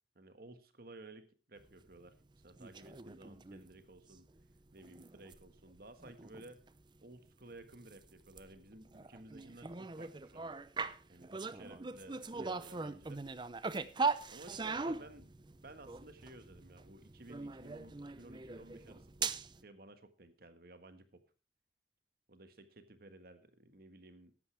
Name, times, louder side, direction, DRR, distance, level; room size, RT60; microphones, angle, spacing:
voice 1, 0.1-2.1 2.4-4.3 4.7-6.6 7.0-10.5 11.0-13.2 14.3-15.3 15.6-19.4 19.6-21.2 22.3-24.3, right 2 dB, 55° right, 10 dB, 1.6 m, -55 dB
sound 1, 2.5-3.7 4.1-4.4 4.7-7.0 7.2-7.3 7.7-19.6, right 4 dB, 25° right, 0.6 m, -41 dB
14.5 x 11.0 x 3.3 m, 0.34 s
head